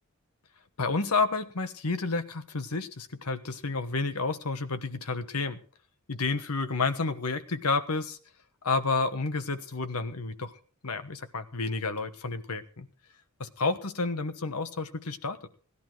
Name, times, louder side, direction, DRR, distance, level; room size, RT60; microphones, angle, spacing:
voice 1, 0.8-5.6 6.1-8.2 8.6-10.6 10.8-12.9 13.4-15.4, left 3 dB, 85° left, 9 dB, 1.2 m, -30 dB
17.0 x 11.5 x 4.7 m, 0.43 s
head